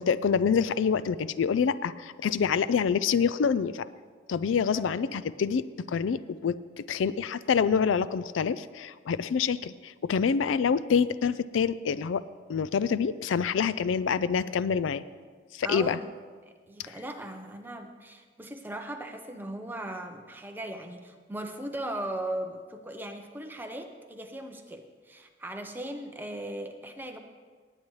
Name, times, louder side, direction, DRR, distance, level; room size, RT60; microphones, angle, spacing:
voice 1, 0.0-3.9 4.3-12.2 12.5-15.0 15.5-16.0 16.8-16.9, left 6 dB, 90° left, 16 dB, 0.4 m, -26 dB
voice 2, 15.6-16.1 16.4-27.2, right 1 dB, 10° right, 4 dB, 0.8 m, -38 dB
18.5 x 8.9 x 3.2 m, 1.5 s
head